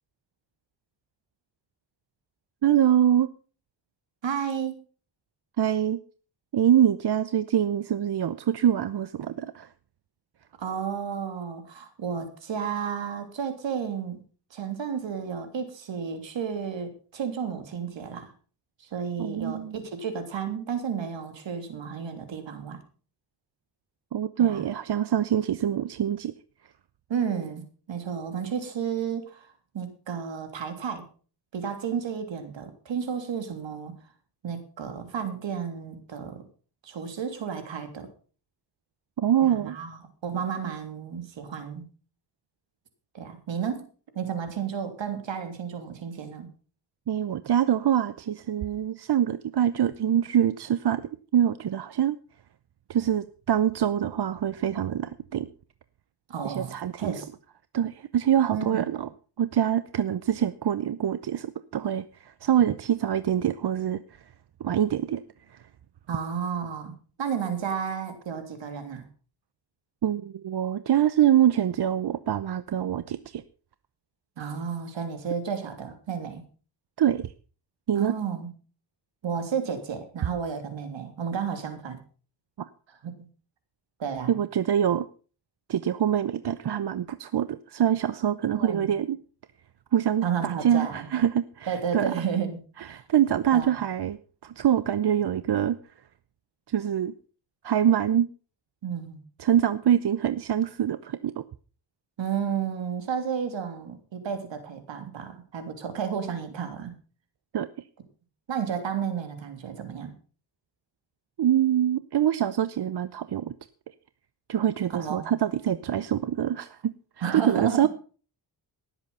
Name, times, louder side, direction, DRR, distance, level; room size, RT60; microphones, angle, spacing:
voice 1, 2.6-3.3 5.6-6.0 6.5-9.7 19.2-19.7 24.1-26.3 39.2-39.8 47.1-52.2 52.9-55.5 56.4-57.1 57.7-59.1 59.4-64.0 64.6-65.2 65.5-65.7 70.0-73.4 77.0-77.3 77.9-78.1 84.3-85.1 85.7-89.2 89.9-92.1 92.8-95.8 96.7-97.1 97.6-98.3 99.4-101.4 107.5-107.7 111.4-113.5 114.5-116.9 117.3-117.9, right 10 dB, 60° right, 14 dB, 0.9 m, -25 dB
voice 2, 4.2-4.8 10.6-14.2 14.5-18.3 18.8-22.8 24.4-24.6 27.1-31.0 31.5-33.9 34.4-36.5 36.8-38.1 39.4-41.9 43.1-43.9 44.1-46.5 56.3-57.3 58.5-58.9 66.1-69.0 74.4-76.4 77.9-78.5 79.2-82.0 83.0-83.1 84.0-84.3 88.5-88.9 90.2-91.1 91.7-92.6 92.9-93.1 93.5-93.8 98.8-99.2 102.2-106.9 108.5-110.1 114.9-115.3 117.2-117.9, right 7 dB, 80° right, 8 dB, 3.3 m, -32 dB
18.5 x 8.0 x 5.6 m, 0.39 s
cardioid pair, 80°, 44 cm